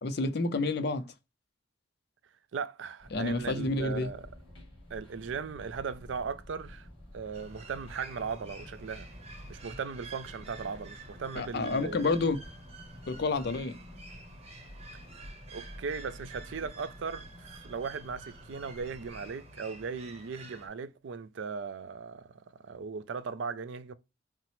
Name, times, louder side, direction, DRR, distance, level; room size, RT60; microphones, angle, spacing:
voice 1, 0.0-1.0 3.1-4.1 11.4-12.4 13.1-13.7, left 3 dB, 55° left, 0.5 m, -29 dB
voice 2, 2.5-4.2 4.9-6.9 7.1-9.1 9.5-12.1 15.5-23.9, right 5 dB, 70° right, 0.4 m, -38 dB
sound 1, 3.0-19.3, left 1 dB, 25° left, 2.0 m, -50 dB
sound 2, 7.3-20.7, right 2 dB, 30° right, 0.8 m, -49 dB
5.7 x 2.0 x 3.0 m
head